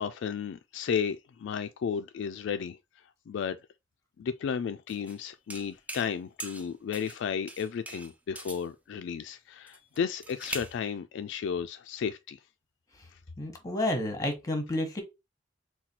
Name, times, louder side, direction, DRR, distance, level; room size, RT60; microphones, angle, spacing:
voice 1, 0.0-2.8 3.3-3.6 4.2-12.4, left 7 dB, 65° left, 0.3 m, -33 dB
sound 1, 4.9-5.2 5.5-6.1 6.4-7.2 7.5-8.7 9.7-10.8, right 1 dB, 10° right, 0.5 m, -41 dB
voice 2, 13.4-15.0, left 1 dB, 20° left, 1.1 m, -30 dB
4.1 x 2.2 x 4.2 m
head